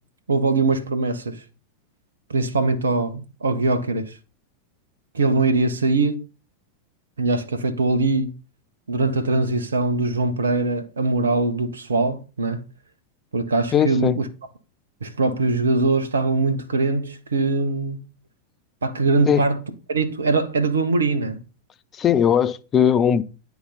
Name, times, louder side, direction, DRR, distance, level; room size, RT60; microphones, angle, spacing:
voice 1, 0.3-1.4 2.3-4.2 5.1-6.2 7.2-8.3 8.9-12.6 13.3-14.3 15.0-18.0 18.8-19.6 19.9-21.4, right 3 dB, 70° right, 1.0 m, -22 dB
voice 2, 13.7-14.2 19.3-19.5 21.9-23.2, left 8 dB, 25° left, 0.7 m, -19 dB
9.8 x 4.7 x 4.1 m
figure-of-eight pair, 90°, 0 cm